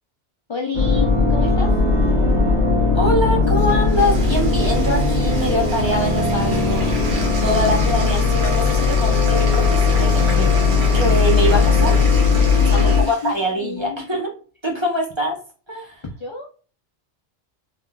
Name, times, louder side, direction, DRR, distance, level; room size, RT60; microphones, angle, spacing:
voice 1, 0.5-1.8 12.3-13.3 13.6-14.0 16.2-16.5, left 4 dB, 40° left, 1 dB, 0.4 m, -29 dB
sound 1, 0.7-13.0, left 4 dB, 80° right, 1.3 m, -18 dB
voice 2, 2.9-6.9 7.4-10.7 10.9-12.1 12.5-14.3 14.6-15.4 15.7-16.0, equal, 25° right, -1 dB, 1.0 m, -24 dB
Bathtub (filling or washing), 3.5-13.5, right 3 dB, 50° right, 1.1 m, -34 dB
sound 2, 6.4-12.5, left 7 dB, 85° left, 0.9 m, -33 dB
3.6 x 3.1 x 2.2 m, 0.39 s
omnidirectional pair, 1.2 m